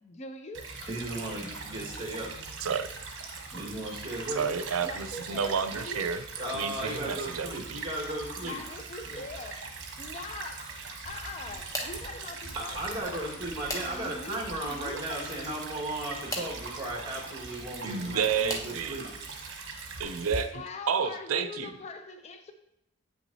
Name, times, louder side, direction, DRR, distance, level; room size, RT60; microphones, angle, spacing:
voice 1, 0.0-0.7 4.8-6.1 8.5-9.6 10.0-10.6 11.0-15.7 20.5-22.5, left 2 dB, 30° left, 6 dB, 0.4 m, -42 dB
Stream / Trickle dribble, 0.5-20.4, right 4 dB, 55° right, 1.1 m, -41 dB
voice 2, 0.9-2.3 3.5-4.5 6.4-8.6 9.1-9.2 12.5-19.1, right 1 dB, 20° right, -2 dB, 1.7 m, -36 dB
voice 3, 2.6-2.9 4.3-6.2 6.5-7.8 8.4-8.6 17.8-19.0 20.0-20.5 20.9-21.7, right 6 dB, 85° right, 10 dB, 0.5 m, -30 dB
sound 1, 11.0-15.0 15.3-15.5, right 1 dB, 60° left, 3.0 m, -50 dB
sound 2, 11.4-12.1 13.0-14.3 15.9-16.6 17.7-18.8 19.5-19.9 20.3-20.4 21.7-21.8, left 1 dB, 15° left, 0.8 m, -39 dB
8.4 x 6.1 x 2.7 m, 0.81 s
head